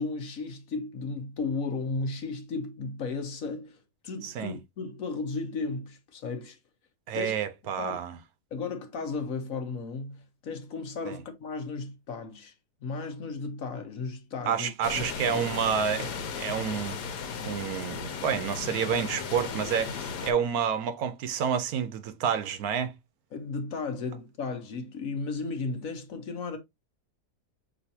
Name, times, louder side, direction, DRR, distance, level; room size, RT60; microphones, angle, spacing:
voice 1, 0.0-6.6 7.1-7.3 7.8-8.0 8.5-12.5 12.8-15.1 15.3-15.5 23.3-26.6, left 4 dB, 65° left, 1.2 m, -35 dB
voice 2, 4.2-4.5 7.1-8.2 11.1-11.2 14.5-17.0 17.4-22.9, right 7 dB, 75° right, 1.1 m, -29 dB
sound 1, 14.8-20.3, left 6 dB, 85° left, 1.4 m, -36 dB
6.1 x 3.0 x 2.7 m
omnidirectional pair, 1.7 m